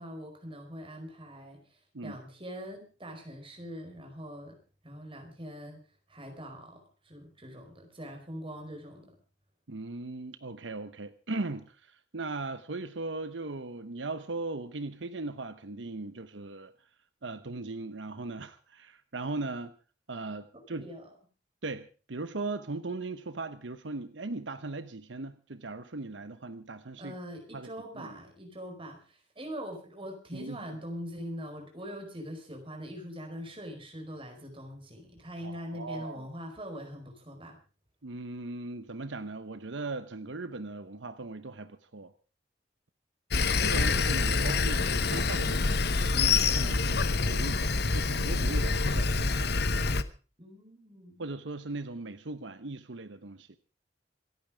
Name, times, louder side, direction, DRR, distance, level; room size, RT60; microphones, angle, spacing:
voice 1, 0.0-4.6 4.8-5.8 6.1-9.1 20.5-21.1 27.0-37.6 50.4-51.3, equal, 30° right, 4.9 m, -43 dB
voice 2, 9.7-16.7 17.2-19.7 20.1-20.9 21.6-27.1 27.5-27.7 28.0-28.2 30.3-30.6 35.4-36.3 38.0-42.1 43.6-45.8 46.1-49.5 51.2-53.6, right 3 dB, 85° right, 1.0 m, -38 dB
Sawing, 43.3-50.0, left 4 dB, 60° left, 1.0 m, -26 dB
27.0 x 9.1 x 5.0 m
head